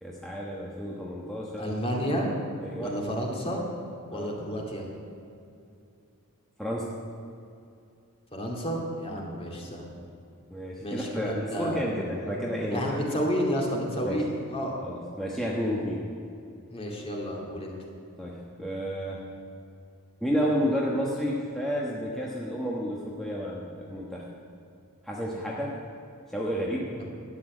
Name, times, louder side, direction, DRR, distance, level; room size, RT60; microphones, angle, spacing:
voice 1, 0.0-1.8 2.6-3.0 4.1-4.3 6.6-6.9 9.1-9.3 10.5-13.1 14.0-14.2 14.8-16.1 18.2-19.3 20.2-24.2 25.0-25.8 26.3-27.0, equal, ahead, -4 dB, 1.2 m, -31 dB
voice 2, 1.6-2.3 2.8-3.6 4.1-4.9 8.3-9.9 10.8-11.8 12.7-14.8 16.7-17.7 27.0-27.1, equal, 25° left, 0 dB, 2.3 m, -31 dB
12.0 x 8.6 x 8.9 m, 2.6 s
head